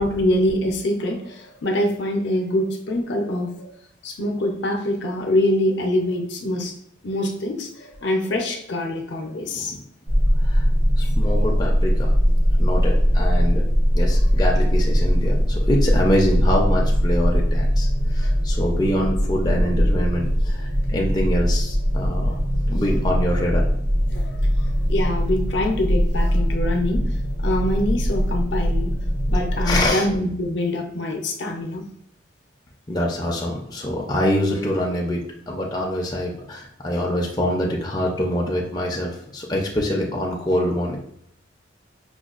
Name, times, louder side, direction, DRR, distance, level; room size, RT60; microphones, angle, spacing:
voice 1, 0.0-3.5 4.0-6.7 7.0-9.7 24.1-24.4 24.9-27.0 27.4-28.9 29.3-31.8, left 1 dB, 65° left, 2 dB, 0.6 m, -24 dB
sound 1, 10.1-29.9, equal, 75° right, 0.7 m, -20 dB
voice 2, 11.0-12.2 12.6-22.4 22.7-23.7 29.6-30.1 32.9-41.0, left 1 dB, 20° left, -2 dB, 0.4 m, -25 dB
5.0 x 2.2 x 2.4 m, 0.70 s
head